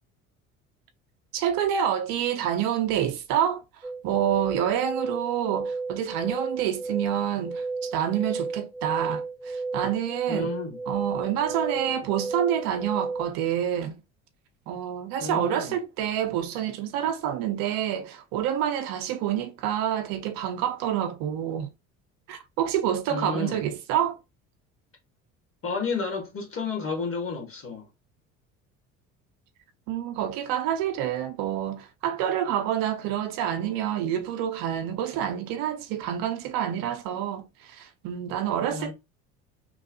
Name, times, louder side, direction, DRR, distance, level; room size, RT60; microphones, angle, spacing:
voice 1, 1.3-3.6 4.0-10.5 10.9-14.0 14.7-21.7 22.3-24.2 29.9-38.9, right 10 dB, 55° right, 0.5 m, -28 dB
sound 1, 3.8-13.3, right 3 dB, 5° right, 0.7 m, -33 dB
voice 2, 10.3-10.8 15.2-15.8 23.1-23.6 25.6-27.9 38.7-38.9, left 4 dB, 30° left, 1.3 m, -31 dB
3.0 x 2.0 x 2.6 m
hypercardioid pair, 60°, 41 cm